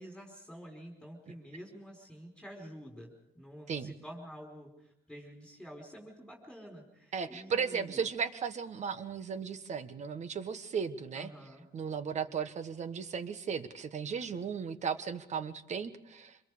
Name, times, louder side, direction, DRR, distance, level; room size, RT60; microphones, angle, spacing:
voice 1, 0.0-8.0 11.1-11.7, equal, ahead, -1 dB, 4.6 m, -49 dB
voice 2, 7.1-11.3 11.7-16.4, right 6 dB, 45° right, 12 dB, 1.4 m, -36 dB
25.5 x 22.0 x 5.0 m, 0.79 s
cardioid pair, 110°, 17 cm